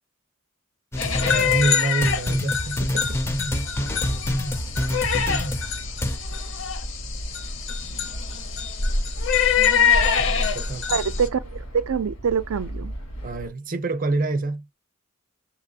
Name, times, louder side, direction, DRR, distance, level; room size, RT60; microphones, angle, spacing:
sound 1, 0.9-6.2, left 1 dB, 10° left, 0.4 m, -27 dB
sound 2, 1.0-11.3, left 6 dB, 60° left, 0.6 m, -25 dB
voice 1, 1.0-3.2 10.2-11.3 13.2-14.7, right 3 dB, 40° right, 0.6 m, -28 dB
sound 3, 2.6-13.5, right 1 dB, 85° left, 1.6 m, -37 dB
voice 2, 10.9-13.0, right 6 dB, 80° right, 0.4 m, -25 dB
6.6 x 2.8 x 2.7 m
head